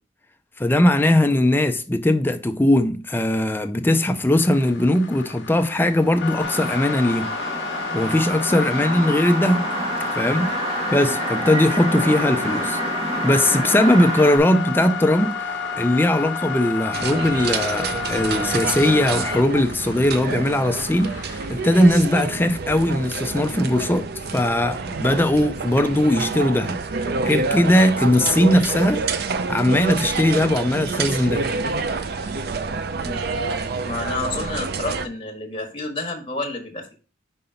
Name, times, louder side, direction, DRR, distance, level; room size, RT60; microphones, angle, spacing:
voice 1, 0.6-7.3 7.9-9.7 10.2-10.6 10.9-12.8 13.2-15.3 15.8-29.0 29.5-31.5, left 1 dB, 10° left, 0.4 m, -19 dB
sound 1, 4.3-21.9, left 5 dB, 65° left, 1.0 m, -31 dB
sound 2, 6.4-14.4, right 2 dB, 35° right, 1.7 m, -28 dB
sound 3, 16.9-35.1, right 4 dB, 55° right, 0.5 m, -28 dB
voice 2, 33.8-36.9, left 2 dB, 25° left, 1.4 m, -30 dB
5.5 x 3.8 x 5.6 m
head